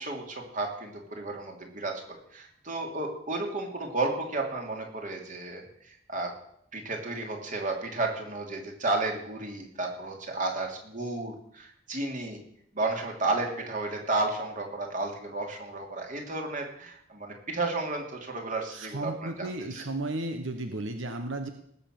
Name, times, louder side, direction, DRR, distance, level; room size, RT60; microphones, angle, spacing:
voice 1, 0.0-6.3 6.7-12.4 12.7-19.8, right 2 dB, 45° right, 2 dB, 3.1 m, -33 dB
voice 2, 18.7-21.5, right 2 dB, 85° right, 6 dB, 1.3 m, -34 dB
19.0 x 6.9 x 7.8 m, 0.71 s
head